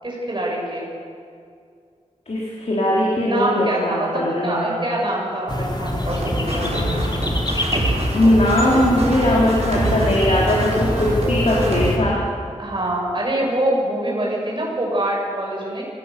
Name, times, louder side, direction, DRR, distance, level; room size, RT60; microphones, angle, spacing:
voice 1, 0.0-0.9 3.2-6.7 12.6-15.8, right 1 dB, 45° right, -3 dB, 7.3 m, -24 dB
voice 2, 2.3-4.7 6.5-7.2 8.1-12.2, left 1 dB, 70° left, -5 dB, 4.3 m, -20 dB
sound 1, 5.5-12.0, left 1 dB, 40° left, 3.3 m, -25 dB
sound 2, 6.1-11.9, right 2 dB, 65° right, 6.1 m, -26 dB
26.0 x 19.5 x 7.0 m, 2.3 s
wide cardioid pair, 85°, 12 cm